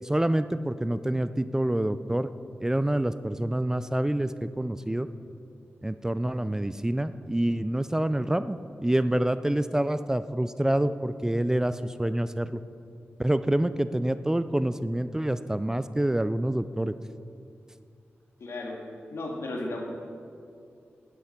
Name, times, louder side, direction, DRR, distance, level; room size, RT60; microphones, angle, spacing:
voice 1, 0.0-2.3 2.6-5.1 5.8-12.6 13.2-16.9, right 1 dB, 10° right, 13 dB, 0.4 m, -27 dB
voice 2, 18.4-18.8 19.1-19.8, left 2 dB, 75° left, 0 dB, 2.2 m, -34 dB
12.0 x 9.6 x 5.9 m, 2.5 s
wide cardioid pair, 75°, 4 cm